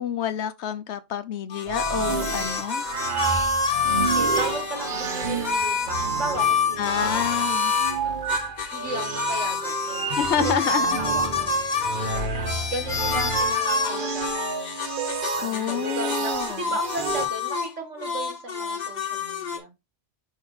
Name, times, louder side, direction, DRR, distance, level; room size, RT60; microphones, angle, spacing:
voice 1, 0.0-2.8 6.8-7.7 10.2-10.9 15.4-16.6, left 9 dB, 70° left, 1.0 m, -28 dB
Harmonica blues, 1.5-4.9 5.4-8.0 8.3-15.8 16.1-17.7 18.0-19.6, left 3 dB, 40° left, 1.0 m, -27 dB
sound 1, 1.7-17.3, right 4 dB, 50° right, 1.1 m, -31 dB
voice 2, 3.8-8.2 8.7-11.6 12.0-14.7 15.4-19.7, right 2 dB, 85° right, 2.0 m, -36 dB
5.3 x 5.2 x 3.9 m
omnidirectional pair, 1.2 m